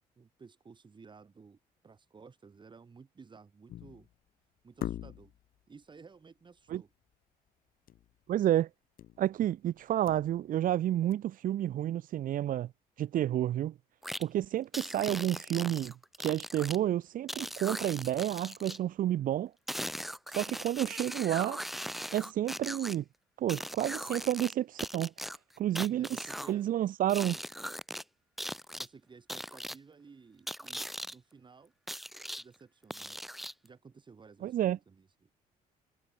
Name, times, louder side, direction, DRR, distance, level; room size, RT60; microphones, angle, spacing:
voice 1, 0.0-1.6 1.8-4.1 4.6-5.3 5.7-6.9 25.8-26.6 27.3-27.4 28.8-31.7 32.3-33.2 33.6-35.3, right 5 dB, 30° right, 3.3 m, -55 dB
sound 1, 3.7-4.1 4.8-5.5 7.9-8.1 8.4-8.5 9.0-9.3 9.7-10.7 11.1-11.2, left 12 dB, 65° left, 2.8 m, -41 dB
voice 2, 8.3-8.7 9.2-12.7 13.0-13.7 14.2-15.9 16.2-19.5 20.3-21.6 22.1-23.0 23.4-25.1 25.6-26.1 26.5-27.4 34.4-34.8, right 12 dB, 60° right, 0.8 m, -30 dB
sound 2, 14.0-14.2 14.7-16.8 17.3-18.8 19.7-22.9 23.5-24.5 24.8-26.5 27.1-28.0 28.4-28.9 29.3-29.8 30.5-31.1 31.9-32.4 32.9-33.7, equal, ahead, 2.5 m, -39 dB
cardioid pair, 100°, 16 cm